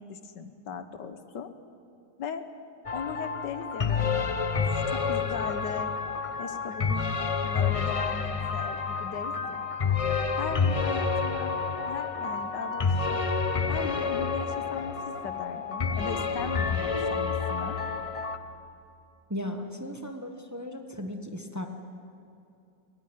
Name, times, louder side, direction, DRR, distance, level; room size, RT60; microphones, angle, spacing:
voice 1, 0.0-1.5 2.2-2.5 2.9-5.9 6.4-9.7 10.3-13.2 13.7-17.8, left 6 dB, 80° left, 10 dB, 1.8 m, -38 dB
sound 1, 2.9-18.4, left 5 dB, 35° left, 0.5 m, -29 dB
voice 2, 19.3-21.7, left 1 dB, 10° right, 5 dB, 1.2 m, -36 dB
21.5 x 18.5 x 9.2 m, 2.6 s
omnidirectional pair, 1.8 m